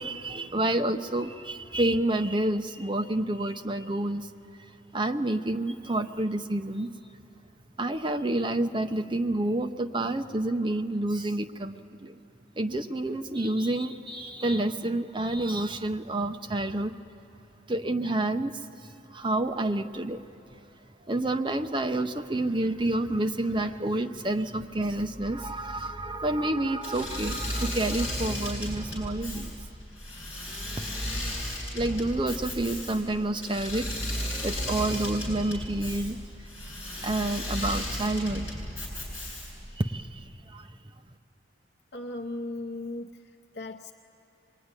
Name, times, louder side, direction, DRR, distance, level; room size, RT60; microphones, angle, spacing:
voice 1, 0.0-4.3 4.9-6.9 7.8-11.8 12.0-12.2 12.6-17.0 17.7-20.2 21.1-29.6 31.7-36.2 37.0-38.5 39.8-40.7, right 1 dB, 25° right, 7 dB, 0.7 m, -29 dB
Engine / Mechanisms, 26.8-39.7, left 1 dB, 20° left, 7.4 m, -34 dB
voice 2, 41.9-43.9, left 2 dB, 55° left, 4 dB, 0.8 m, -37 dB
25.0 x 21.0 x 9.7 m, 2.9 s
head